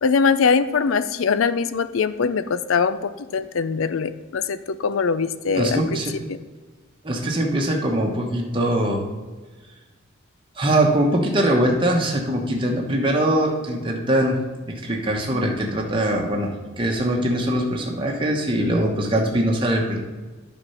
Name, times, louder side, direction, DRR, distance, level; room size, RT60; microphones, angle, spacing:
voice 1, 0.0-6.0, left 5 dB, 70° left, 13 dB, 0.5 m, -22 dB
voice 2, 5.5-6.1 7.0-9.0 10.6-14.4 14.7-16.5 16.8-20.0, right 1 dB, 25° right, 0 dB, 1.1 m, -22 dB
9.7 x 4.3 x 5.6 m, 1.3 s
head